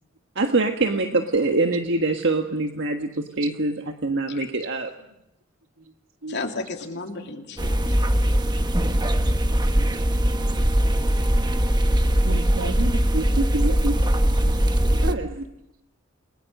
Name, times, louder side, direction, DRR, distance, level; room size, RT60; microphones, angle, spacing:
voice 1, 0.3-3.7 4.0-4.9 15.0-15.3, right 3 dB, 60° right, 5 dB, 1.5 m, -24 dB
voice 2, 6.3-7.9, left 3 dB, 55° left, 3 dB, 3.0 m, -33 dB
sound 1, 7.6-15.1, equal, 20° right, 1.2 m, -21 dB
voice 3, 12.2-14.6 14.8-15.4, right 2 dB, 90° right, 5 dB, 2.2 m, -31 dB
29.5 x 22.0 x 6.6 m, 0.83 s
head